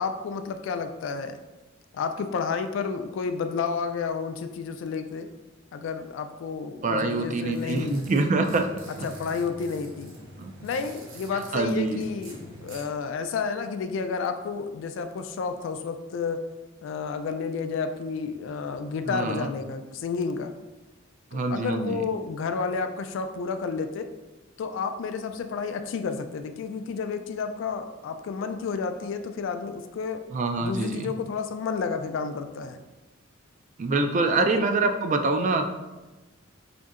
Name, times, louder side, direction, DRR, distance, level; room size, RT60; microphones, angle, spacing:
voice 1, 0.0-1.4 1.9-5.3 5.7-8.1 9.0-10.1 10.6-16.4 16.8-20.5 21.3-24.1 24.6-30.2 30.6-32.8 34.4-34.6, left 5 dB, 65° left, 8 dB, 0.3 m, -31 dB
voice 2, 6.8-8.7 9.0-9.1 10.4-10.5 11.3-12.0 19.0-19.5 21.3-22.0 30.3-31.1 33.8-35.7, right 3 dB, 40° right, 6 dB, 0.3 m, -25 dB
sound 1, 7.3-12.8, right 1 dB, 75° right, 0.9 m, -46 dB
5.1 x 2.7 x 2.4 m, 1.1 s
head